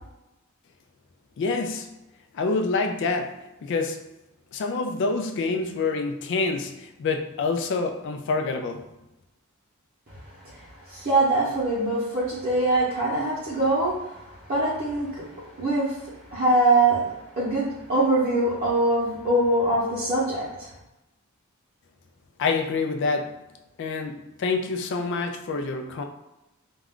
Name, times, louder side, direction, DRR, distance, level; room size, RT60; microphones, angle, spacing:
voice 1, 1.4-1.9 2.3-3.3 3.6-4.0 4.5-8.8 22.4-23.3 23.8-26.0, left 4 dB, 60° left, 6 dB, 0.3 m, -27 dB
voice 2, 10.5-15.3 15.6-20.7, right 2 dB, 45° right, -9 dB, 0.8 m, -23 dB
2.4 x 2.2 x 3.5 m, 0.96 s
head